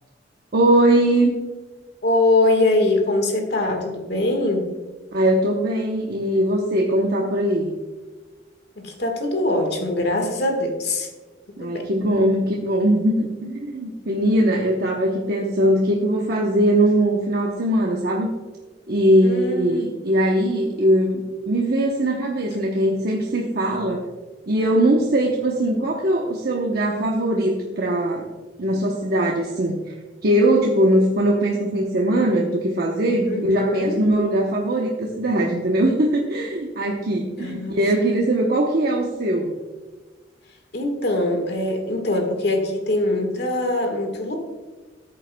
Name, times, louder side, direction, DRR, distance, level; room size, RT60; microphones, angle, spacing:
voice 1, 0.5-1.3 5.1-7.7 11.6-18.3 18.9-24.0 24.5-28.3 28.6-29.9 30.2-39.5, right 1 dB, 55° right, -1 dB, 0.9 m, -20 dB
voice 2, 2.0-4.7 8.7-11.1 11.6-11.9 19.2-19.9 33.3-34.0 37.4-37.8 40.7-44.4, left 2 dB, 60° left, 4 dB, 1.6 m, -22 dB
13.5 x 7.6 x 2.2 m, 1.3 s
head